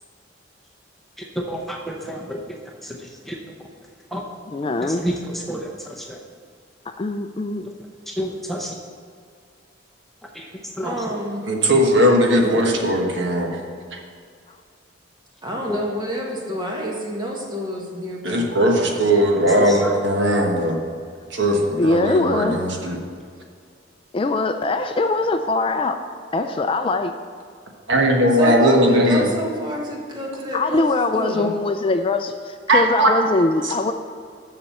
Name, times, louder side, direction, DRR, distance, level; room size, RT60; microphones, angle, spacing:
voice 1, 1.2-3.7 4.1-4.3 4.8-6.2 7.6-7.7 8.1-8.7 10.3-11.2 15.7-15.8 19.4-19.9, equal, ahead, -1 dB, 0.7 m, -30 dB
voice 2, 4.5-5.0 7.0-7.7 21.8-22.6 24.1-26.0 26.3-27.1 30.5-33.9, left 2 dB, 25° left, 7 dB, 0.3 m, -22 dB
voice 3, 10.8-11.5 15.4-18.6 28.3-30.8 31.1-31.5, right 1 dB, 20° right, -1 dB, 1.5 m, -28 dB
voice 4, 11.5-13.6 13.9-14.0 18.2-20.8 21.3-23.0 27.9-29.3 32.7-33.1 33.6-33.9, equal, 65° right, 1 dB, 1.3 m, -18 dB
7.2 x 6.6 x 6.9 m, 2.2 s
head